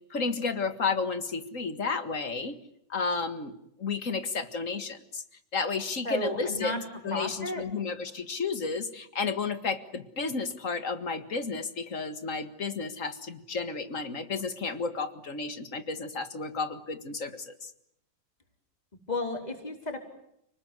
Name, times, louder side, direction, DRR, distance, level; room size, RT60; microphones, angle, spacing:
voice 1, 0.1-2.6 2.9-3.5 3.8-5.2 5.5-6.7 7.0-17.7, left 4 dB, 50° left, 10 dB, 2.1 m, -32 dB
voice 2, 6.0-6.8 7.1-7.7 19.1-20.0, left 1 dB, 25° left, 3 dB, 4.5 m, -33 dB
30.0 x 20.0 x 9.6 m, 0.76 s
omnidirectional pair, 1.8 m